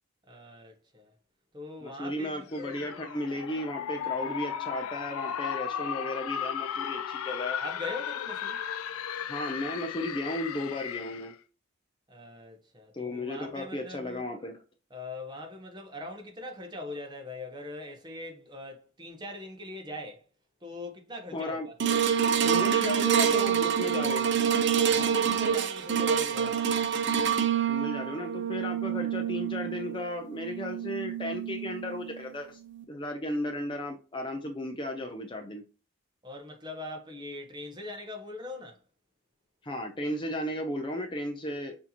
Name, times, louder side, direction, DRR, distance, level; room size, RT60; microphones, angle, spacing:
voice 1, 0.3-1.1 1.5-2.9 7.6-8.6 12.1-14.2 14.9-20.2 20.6-21.8 24.9-26.6 36.2-38.8, left 2 dB, 20° right, 0.8 m, -41 dB
voice 2, 1.8-7.6 9.3-11.3 12.9-14.6 21.3-21.7 22.3-24.3 27.7-32.6 32.9-35.6 39.6-41.8, left 1 dB, 20° left, 0.5 m, -35 dB
sound 1, 2.5-11.3, left 8 dB, 85° left, 0.4 m, -35 dB
sound 2, 21.8-32.2 32.7-32.8, right 8 dB, 55° right, 0.6 m, -27 dB
6.2 x 2.8 x 2.8 m
head